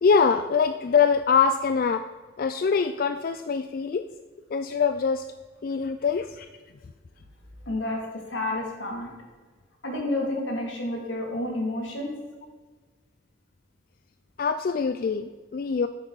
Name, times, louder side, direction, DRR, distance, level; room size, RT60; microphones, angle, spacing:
voice 1, 0.0-2.0 2.4-4.0 4.5-5.3 5.6-6.5 14.4-15.9, left 5 dB, 50° left, 10 dB, 0.3 m, -23 dB
voice 2, 7.7-9.1 9.8-12.1, left 1 dB, 85° left, -1 dB, 2.5 m, -30 dB
10.0 x 8.2 x 4.0 m, 1.4 s
head